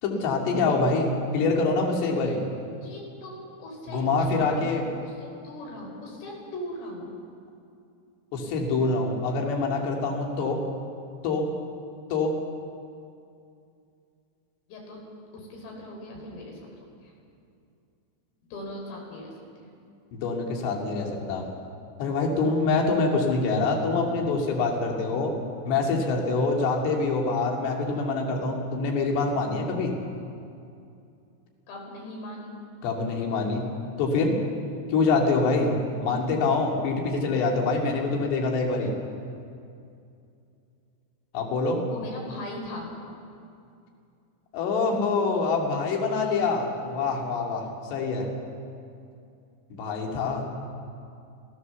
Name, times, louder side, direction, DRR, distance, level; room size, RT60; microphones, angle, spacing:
voice 1, 0.0-2.4 3.9-4.8 8.3-10.6 11.2-11.5 12.1-12.3 20.1-21.4 22.0-25.3 25.7-29.9 32.8-33.7 34.0-34.3 34.9-35.8 36.0-38.9 41.3-41.8 44.5-47.6 47.9-48.3 49.7-50.4, left 3 dB, 60° left, 0 dB, 4.3 m, -25 dB
voice 2, 2.8-7.1 14.7-15.0 15.3-16.7 17.0-17.1 18.5-19.3 19.6-19.7 31.7-32.5 41.8-43.0, left 1 dB, 80° left, 0 dB, 7.1 m, -39 dB
28.0 x 15.5 x 7.1 m, 2.5 s
omnidirectional pair, 6.0 m